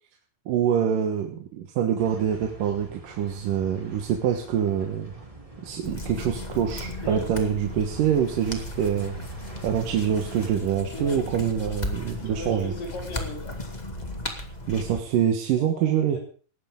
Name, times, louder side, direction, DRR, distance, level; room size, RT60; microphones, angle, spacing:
voice 1, 0.5-5.1 5.6-9.2 9.6-12.7 14.7-16.2, right 9 dB, 70° right, 2 dB, 2.9 m, -25 dB
sound 1, 2.0-10.5, right 1 dB, 10° right, 2.3 m, -45 dB
sound 2, 5.8-15.0, left 1 dB, 20° left, 1.2 m, -36 dB
voice 2, 10.9-11.2 12.2-13.6 15.6-16.2, left 1 dB, 65° left, 0 dB, 6.1 m, -37 dB
19.5 x 15.0 x 3.8 m, 0.41 s
omnidirectional pair, 4.2 m